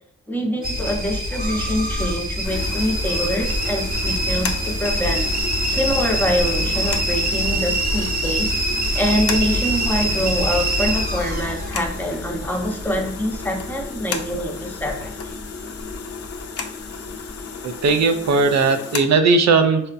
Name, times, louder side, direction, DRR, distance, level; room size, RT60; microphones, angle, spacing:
voice 1, 0.3-5.3 5.7-8.5 8.9-15.4, equal, 5° left, 1 dB, 0.8 m, -25 dB
sound 1, 0.6-15.5 15.8-16.4 16.9-17.4 17.8-17.9, right 1 dB, 30° right, 0.9 m, -24 dB
sound 2, 2.4-19.0, left 5 dB, 50° left, 0.5 m, -34 dB
voice 2, 17.6-19.9, right 4 dB, 60° right, 7 dB, 0.5 m, -17 dB
4.1 x 2.1 x 2.4 m, 0.75 s
cardioid pair, 55°, 31 cm